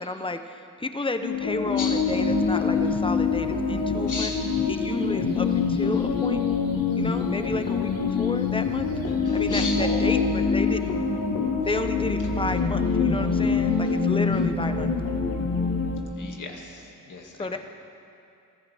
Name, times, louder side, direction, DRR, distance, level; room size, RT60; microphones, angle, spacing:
voice 1, 0.0-4.3 4.7-6.4 6.9-8.9 9.3-10.2 10.5-11.1 11.7-14.9 17.4-17.6, left 2 dB, 15° left, 8 dB, 0.9 m, -32 dB
sound 1, 1.2-16.0, left 5 dB, 85° left, 1.8 m, -25 dB
voice 2, 4.1-4.5 9.0-10.6 13.9-14.0 16.2-17.6, left 3 dB, 65° left, 0 dB, 2.4 m, -35 dB
23.0 x 15.0 x 3.6 m, 2.6 s
cardioid pair, 75°, 33 cm